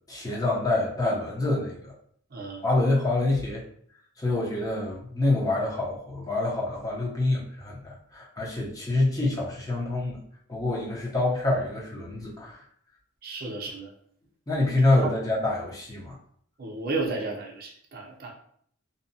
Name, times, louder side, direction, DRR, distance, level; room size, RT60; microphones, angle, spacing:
voice 1, 0.1-1.9 2.6-3.6 4.2-10.2 10.5-12.6 14.5-16.2, left 2 dB, 20° left, -4 dB, 0.6 m, -26 dB
voice 2, 2.3-2.6 13.2-13.9 15.0-15.1 16.6-18.3, right 3 dB, 45° right, 1 dB, 0.5 m, -33 dB
2.7 x 2.1 x 2.6 m, 0.63 s
head